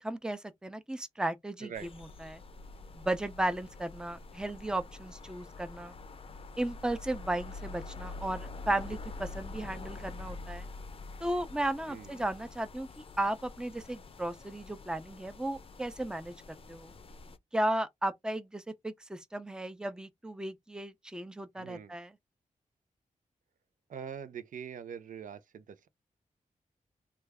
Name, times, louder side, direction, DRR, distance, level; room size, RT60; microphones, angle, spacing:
voice 1, 0.0-1.7 2.0-2.4 2.9-5.9 6.6-10.7 11.2-16.3 16.7-16.9 17.5-22.1, right 1 dB, 5° right, 0.5 m, -35 dB
voice 2, 1.6-1.9 11.9-12.2 21.6-21.9 23.9-25.9, right 7 dB, 75° right, 0.5 m, -43 dB
sound 1, 1.7-17.4, left 3 dB, 45° left, 0.5 m, -46 dB
3.2 x 2.3 x 3.4 m
wide cardioid pair, 95°, 14 cm